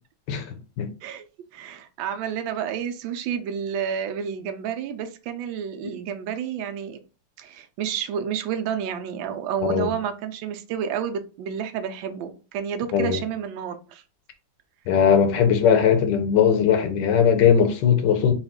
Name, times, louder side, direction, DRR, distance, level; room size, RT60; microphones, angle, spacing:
voice 1, 0.3-0.9 9.7-9.9 12.9-13.2 14.9-18.3, left 7 dB, 70° left, 1.2 m, -19 dB
voice 2, 1.5-7.0 7.4-14.0, right 8 dB, 85° right, 1.4 m, -30 dB
4.1 x 2.3 x 3.5 m
omnidirectional pair, 2.1 m